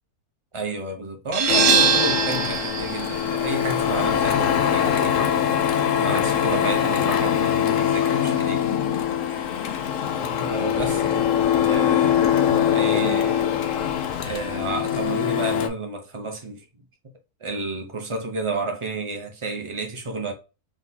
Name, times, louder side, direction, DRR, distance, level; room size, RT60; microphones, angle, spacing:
voice 1, 0.5-8.7 10.2-11.3 11.6-13.5 14.2-16.6 17.4-20.3, right 3 dB, 35° right, 0.5 m, -31 dB
sound 1, 1.3-6.7, right 7 dB, 85° right, 1.3 m, -25 dB
Printer, 1.5-15.7, left 9 dB, 65° left, 0.9 m, -22 dB
3.7 x 2.8 x 3.9 m
omnidirectional pair, 1.6 m